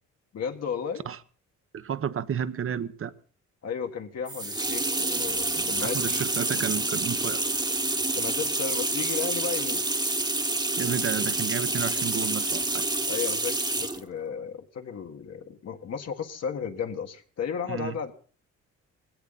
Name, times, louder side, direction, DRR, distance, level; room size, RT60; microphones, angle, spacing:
voice 1, 0.3-1.1 3.6-6.2 8.1-10.1 13.1-18.1, left 6 dB, 55° left, 1.7 m, -34 dB
voice 2, 1.7-3.1 5.5-7.4 10.8-12.9 17.7-18.0, right 8 dB, 45° right, 1.1 m, -31 dB
sound 1, 4.3-14.0, right 2 dB, 15° right, 1.3 m, -28 dB
19.0 x 16.5 x 4.1 m
cardioid pair, 90°, 30 cm